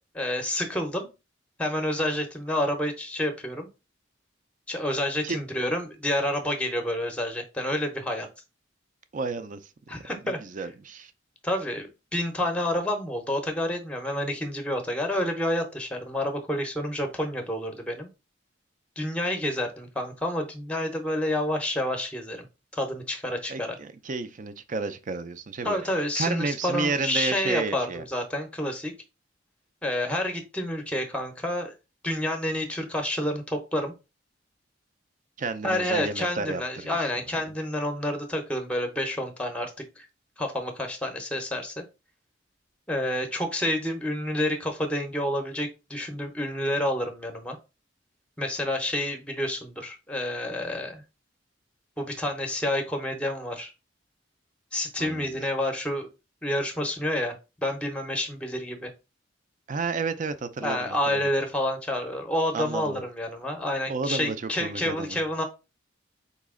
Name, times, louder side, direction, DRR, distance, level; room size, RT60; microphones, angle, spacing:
voice 1, 0.1-1.1 1.6-3.7 4.7-8.3 9.9-10.4 11.4-18.1 19.0-22.5 22.7-23.8 25.6-28.9 29.8-31.7 32.0-33.9 35.6-39.7 40.0-40.1 40.4-41.8 42.9-47.6 48.4-51.0 52.0-53.7 54.7-56.1 56.4-57.3 57.6-58.9 60.6-65.4, left 1 dB, 5° left, 0.7 m, -29 dB
voice 2, 9.1-9.6 10.2-11.1 23.5-25.8 26.2-28.0 35.4-37.0 55.0-55.4 59.7-61.3 62.5-63.0 63.9-65.2, right 4 dB, 40° right, 0.4 m, -31 dB
4.1 x 2.9 x 3.6 m
head